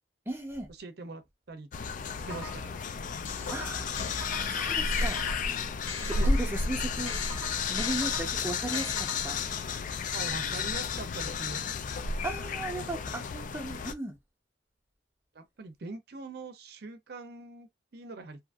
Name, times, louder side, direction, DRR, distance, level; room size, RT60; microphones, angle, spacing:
voice 1, 0.3-0.7 3.5-4.1 4.5-5.2 6.1-7.2 7.7-9.4 10.4-10.6 12.2-14.2, right 2 dB, 15° right, 0.6 m, -36 dB
voice 2, 0.8-1.2 1.5-1.7 2.3-2.8 6.0-6.3 10.1-11.7 12.7-12.8 15.3-18.4, right 3 dB, 60° right, 0.6 m, -42 dB
sound 1, 1.7-13.9, left 4 dB, 45° left, 0.3 m, -32 dB
sound 2, 2.1-2.8 3.3-6.6 7.1-9.5, left 3 dB, 85° left, 0.7 m, -41 dB
2.7 x 2.5 x 2.3 m
head